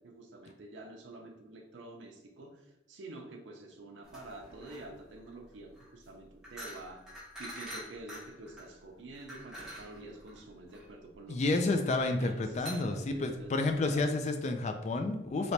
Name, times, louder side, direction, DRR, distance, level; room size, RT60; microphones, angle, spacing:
voice 1, 0.0-2.5 2.9-7.0 7.4-11.7 12.1-14.2, right 2 dB, 85° right, 1 dB, 0.5 m, -48 dB
sound 1, 4.0-14.0, equal, 5° right, 0.7 m, -48 dB
voice 2, 11.3-15.5, left 2 dB, 40° left, 6 dB, 0.3 m, -30 dB
3.2 x 2.9 x 2.8 m, 0.95 s
head